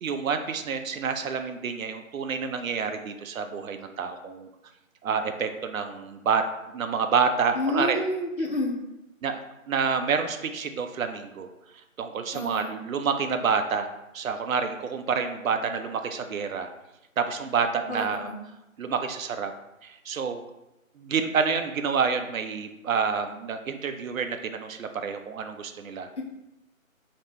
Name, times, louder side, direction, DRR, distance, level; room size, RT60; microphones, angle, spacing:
voice 1, 0.0-4.5 5.0-6.4 6.7-8.0 9.2-9.4 9.7-11.5 12.0-13.9 14.1-16.7 17.2-18.3 18.8-19.5 19.8-20.4 21.0-26.1, right 6 dB, 75° right, 7 dB, 0.5 m, -28 dB
voice 2, 7.5-8.8 12.3-12.7 17.9-18.4 26.2-26.3, left 1 dB, 55° left, 0 dB, 0.8 m, -29 dB
2.8 x 2.5 x 3.2 m, 0.94 s
figure-of-eight pair, 160°, 42 cm